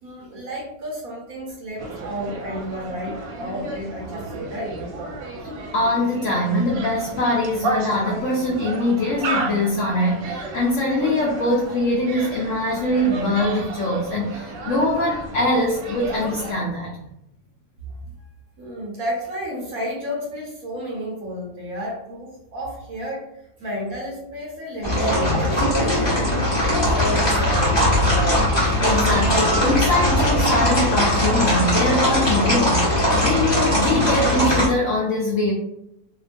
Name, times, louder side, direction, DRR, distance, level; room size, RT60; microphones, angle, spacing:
voice 1, 0.0-4.7 18.6-23.3 23.6-27.6, equal, 60° right, -3 dB, 1.1 m, -32 dB
sound 1, 1.8-16.5, right 2 dB, 80° right, 1.3 m, -32 dB
voice 2, 5.7-16.9 28.8-35.5, left 1 dB, 75° left, -3 dB, 0.7 m, -22 dB
sound 2, 24.8-34.7, left 1 dB, 25° left, 0.6 m, -19 dB
2.9 x 2.2 x 2.5 m, 0.82 s
omnidirectional pair, 1.9 m